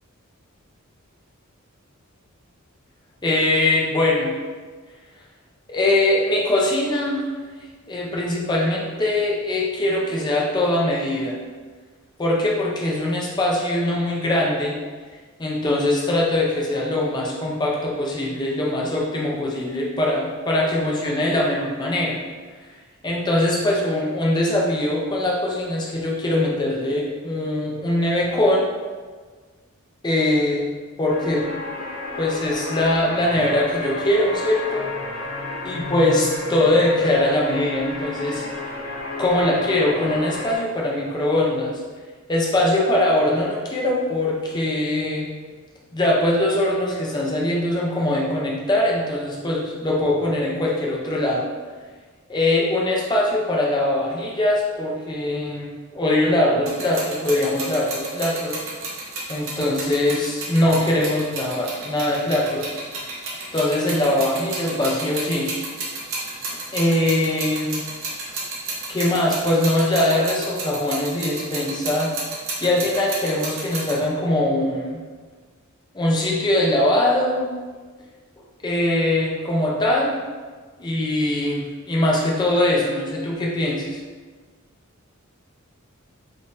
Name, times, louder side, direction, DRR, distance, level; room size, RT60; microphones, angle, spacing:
voice 1, 3.2-4.4 5.7-7.3 7.9-11.4 12.2-14.7 15.4-22.2 23.0-28.6 30.0-30.7 31.0-31.4 32.2-34.9 35.6-38.4 39.2-41.7 42.3-45.3 45.9-51.4 52.3-58.6 59.3-62.7 63.5-65.5 66.7-67.8 68.9-72.1 72.6-75.0 75.9-77.5 78.6-80.2 80.8-84.0, left 1 dB, 20° left, -3 dB, 0.5 m, -22 dB
sound 1, 31.1-40.6, left 2 dB, 70° left, 0.8 m, -32 dB
sound 2, 56.7-74.0, right 3 dB, 60° right, 0.8 m, -32 dB
3.7 x 2.6 x 2.5 m, 1.4 s
head